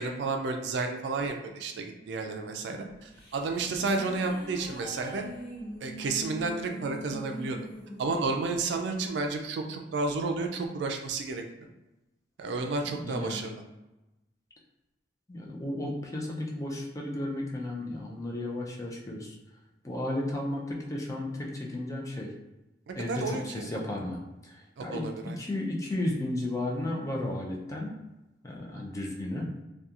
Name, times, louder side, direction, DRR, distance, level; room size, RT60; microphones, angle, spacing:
voice 1, 0.0-5.3 5.8-7.6 8.0-11.4 12.4-13.6 22.9-23.7 24.8-25.4, right 3 dB, 70° right, 4 dB, 0.3 m, -31 dB
sound 1, 2.9-9.5, right 1 dB, 65° left, 1.1 m, -43 dB
voice 2, 12.9-13.4 15.3-19.4 19.8-22.3 22.9-25.1 25.4-28.0 28.4-29.5, left 1 dB, 20° left, -2 dB, 0.4 m, -34 dB
2.7 x 2.3 x 2.4 m, 0.98 s
head